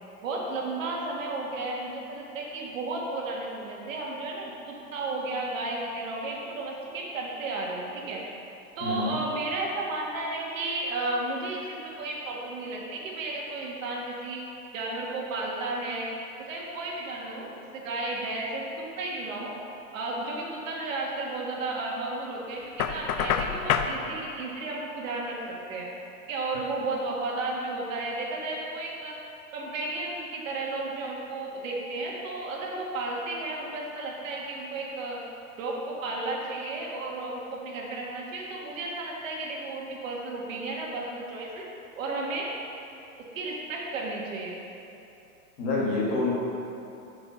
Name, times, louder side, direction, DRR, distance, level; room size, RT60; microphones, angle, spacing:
voice 1, 0.2-8.2 8.8-14.4 14.7-16.1 16.4-18.7 19.0-19.5 19.9-25.9 26.3-29.2 29.5-35.2 35.6-41.6 42.0-42.5 43.3-44.6, right 2 dB, 60° right, -2 dB, 1.8 m, -33 dB
voice 2, 8.8-9.2 45.6-46.3, left 3 dB, 30° left, -4 dB, 1.7 m, -27 dB
Knock, 22.8-24.0, left 8 dB, 75° left, 0.7 m, -26 dB
8.7 x 5.0 x 5.5 m, 2.9 s
hypercardioid pair, 155°, 44 cm